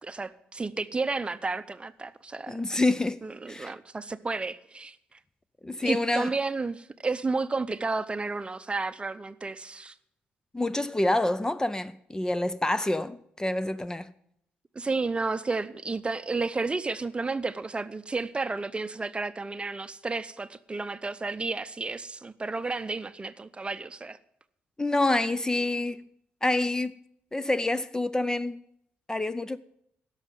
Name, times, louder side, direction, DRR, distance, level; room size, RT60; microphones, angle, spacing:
voice 1, 0.0-2.6 3.2-5.0 5.8-9.9 14.7-24.2, right 3 dB, 25° right, 0.7 m, -32 dB
voice 2, 2.5-3.2 3.5-3.7 5.6-6.3 10.5-14.1 24.8-26.1 26.4-26.9 27.3-28.6 29.1-29.6, left 2 dB, 15° left, 0.5 m, -27 dB
11.5 x 6.5 x 9.0 m
supercardioid pair, 60°, 4 cm